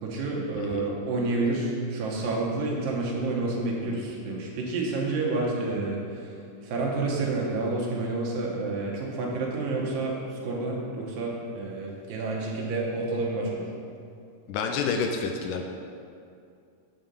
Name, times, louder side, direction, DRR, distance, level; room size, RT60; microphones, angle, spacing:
voice 1, 0.0-6.2 6.6-10.2 10.4-13.7, right 3 dB, 85° right, -2 dB, 2.8 m, -29 dB
voice 2, 0.6-0.9 14.5-15.6, left 5 dB, 80° left, 3 dB, 2.0 m, -29 dB
8.9 x 3.8 x 6.9 m, 2.4 s
omnidirectional pair, 3.9 m